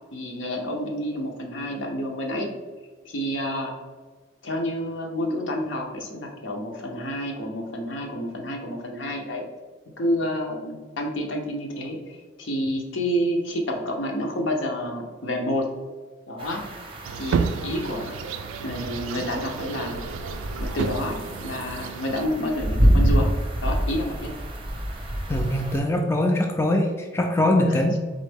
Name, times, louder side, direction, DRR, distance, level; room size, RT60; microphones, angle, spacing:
voice 1, 0.1-2.5 3.0-3.8 4.4-9.5 10.0-15.7 16.3-16.6 17.2-18.2 18.6-20.0 20.6-23.3 23.6-24.3 27.7-27.8, equal, 75° left, 1 dB, 0.8 m, -29 dB
sound 1, 16.4-25.8, equal, 25° right, 0.6 m, -27 dB
sound 2, 17.0-22.3, right 5 dB, 90° right, 0.3 m, -31 dB
voice 2, 25.3-28.0, left 1 dB, 15° left, 2 dB, 0.3 m, -22 dB
4.0 x 3.7 x 3.4 m, 1.4 s
head